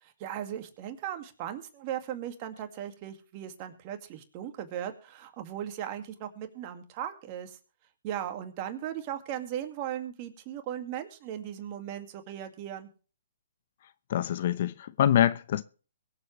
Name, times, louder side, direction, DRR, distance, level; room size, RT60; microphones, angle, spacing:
voice 1, 0.0-7.6 8.0-12.9, right 10 dB, 35° right, 2.2 m, -37 dB
voice 2, 14.1-15.6, left 11 dB, 55° left, 0.9 m, -25 dB
23.0 x 7.8 x 3.3 m
hypercardioid pair, 135°, 0 cm